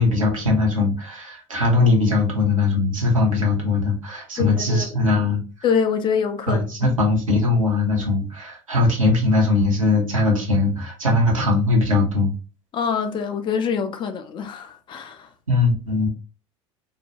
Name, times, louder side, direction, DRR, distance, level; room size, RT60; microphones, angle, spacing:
voice 1, 0.0-5.4 6.5-12.3 15.5-16.1, left 3 dB, 85° right, 0.8 m, -20 dB
voice 2, 4.4-4.9 5.6-7.0 12.7-15.3, left 6 dB, 30° left, 0.4 m, -25 dB
2.6 x 2.1 x 2.8 m
figure-of-eight pair, 75°, 17 cm